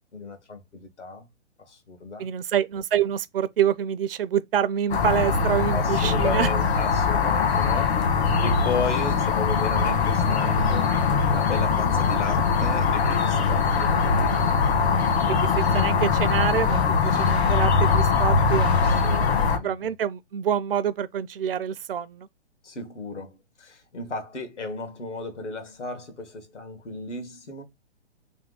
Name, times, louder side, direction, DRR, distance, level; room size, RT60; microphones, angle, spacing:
voice 1, 0.1-1.3 1.7-2.3 5.7-8.1 8.4-10.9 11.3-14.4 17.0-17.3 18.7-19.9 22.6-27.6, left 3 dB, 85° left, 1.6 m, -34 dB
voice 2, 2.2-6.5 15.3-22.3, right 9 dB, 55° right, 0.5 m, -27 dB
sound 1, 4.9-19.6, left 5 dB, 65° left, 1.4 m, -22 dB
3.5 x 3.1 x 3.7 m
hypercardioid pair, 130°, 35 cm